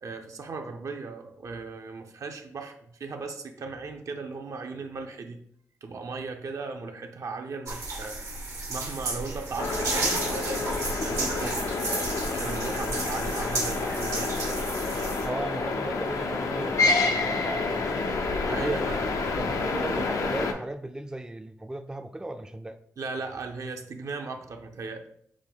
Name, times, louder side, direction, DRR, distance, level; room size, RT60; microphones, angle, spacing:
voice 1, 0.0-5.4 5.8-8.2 8.7-11.7 12.3-14.5 18.4-19.1 19.5-19.7 23.0-25.0, right 4 dB, 65° right, 4 dB, 0.6 m, -37 dB
sound 1, 7.7-15.3, right 2 dB, 85° right, 1.2 m, -32 dB
sound 2, 9.6-20.5, left 3 dB, 80° left, 0.5 m, -29 dB
voice 2, 15.2-18.2 18.5-18.8 19.4-22.8, right 1 dB, 10° right, 7 dB, 0.3 m, -36 dB
6.1 x 2.2 x 3.5 m, 0.68 s
cardioid pair, 55°, 6 cm